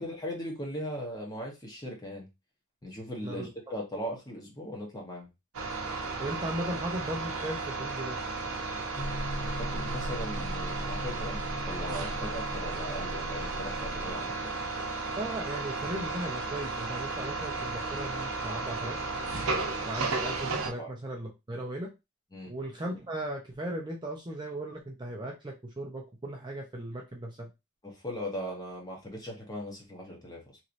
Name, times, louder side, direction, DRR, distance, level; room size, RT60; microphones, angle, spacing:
voice 1, 0.0-2.3 2.8-5.3 9.4-11.4 11.7-14.6 20.8-20.9 22.3-22.5 27.8-30.6, equal, 15° left, -1 dB, 0.9 m, -39 dB
voice 2, 3.2-3.7 6.2-8.2 15.2-19.0 19.9-21.9 22.5-27.5, right 1 dB, 20° right, -1 dB, 0.5 m, -37 dB
sound 1, 5.5-20.7, right 3 dB, 70° right, 0.7 m, -34 dB
sound 2, 9.0-14.1, equal, 60° left, 0.6 m, -38 dB
3.0 x 2.7 x 2.5 m, 0.23 s
head